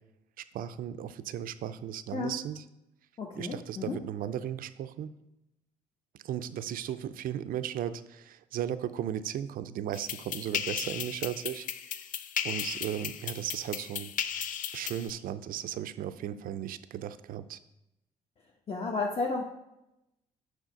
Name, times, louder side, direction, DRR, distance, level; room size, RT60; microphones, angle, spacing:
voice 1, 0.5-2.6 3.4-5.1 6.2-12.0 12.4-14.1 14.7-17.6, right 10 dB, 60° right, 13 dB, 0.5 m, -36 dB
voice 2, 3.2-4.0 18.7-19.4, left 3 dB, 40° left, -1 dB, 1.1 m, -32 dB
sound 1, 9.9-15.1, left 9 dB, 55° left, 0.5 m, -36 dB
6.3 x 5.2 x 5.1 m, 0.88 s
hypercardioid pair, 55°, 16 cm